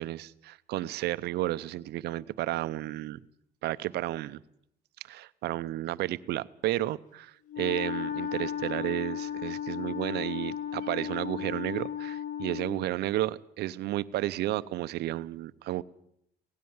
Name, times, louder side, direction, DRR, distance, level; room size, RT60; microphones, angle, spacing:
voice 1, 0.0-3.2 3.6-4.4 5.1-15.8, right 15 dB, 75° right, 0.8 m, -32 dB
Wind instrument woodwind instrument, 7.5-12.9, left 9 dB, 50° left, 0.8 m, -35 dB
17.5 x 16.0 x 9.6 m
cardioid pair, 110°, 17 cm